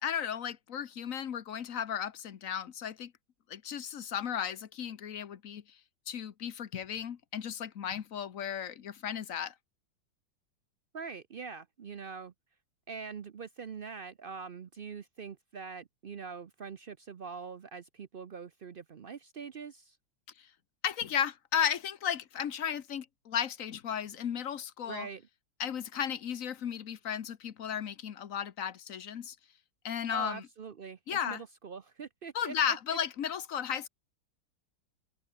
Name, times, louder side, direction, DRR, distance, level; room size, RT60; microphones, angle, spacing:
voice 1, 0.0-3.1 3.5-5.6 6.1-9.5 20.4-20.5 20.8-25.1 25.6-29.3 29.8-30.4 31.1-31.4 32.3-33.9, left 8 dB, 50° left, 1.3 m, -34 dB
voice 2, 10.9-12.3 12.9-20.0 24.9-25.2 30.1-33.0, right 5 dB, 70° right, 0.5 m, -43 dB
open air
omnidirectional pair, 2.0 m